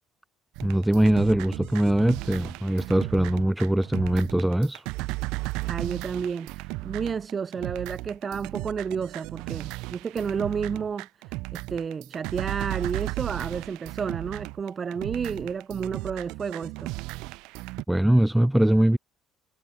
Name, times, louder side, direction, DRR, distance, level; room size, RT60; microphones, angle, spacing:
voice 1, 0.6-4.8 17.9-19.0, right 1 dB, 5° right, 2.3 m, -22 dB
sound 1, 0.6-17.8, right 23 dB, 80° right, 1.9 m, -35 dB
voice 2, 5.7-6.5 6.8-16.9, right 6 dB, 25° right, 3.5 m, -31 dB
cardioid pair, 165°, 0 cm